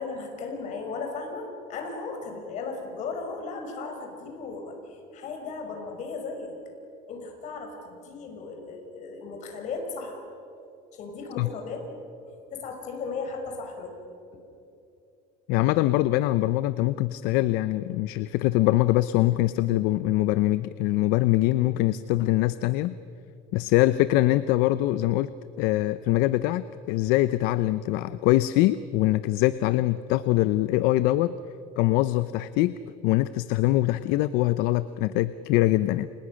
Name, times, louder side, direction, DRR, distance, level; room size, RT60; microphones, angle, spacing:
voice 1, 0.0-6.6 7.1-10.2 10.9-11.9 12.5-13.9 14.3-14.4, left 4 dB, 50° left, 4 dB, 5.5 m, -36 dB
voice 2, 15.5-22.9 23.5-25.3 25.6-31.3 31.8-32.7 33.0-36.1, left 16 dB, 70° left, 14 dB, 0.7 m, -23 dB
30.0 x 28.0 x 6.4 m, 2.8 s
cardioid pair, 150°, 16 cm